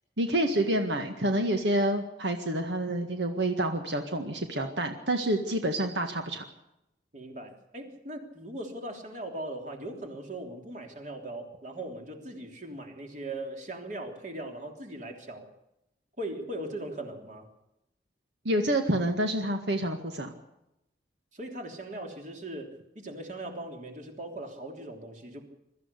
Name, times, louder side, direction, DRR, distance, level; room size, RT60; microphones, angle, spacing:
voice 1, 0.2-6.4 18.5-20.3, right 1 dB, 80° right, 5 dB, 1.8 m, -28 dB
voice 2, 7.1-15.5 16.2-17.5 21.3-25.5, right 1 dB, 45° right, 3 dB, 3.3 m, -39 dB
22.5 x 14.0 x 8.3 m, 0.86 s
head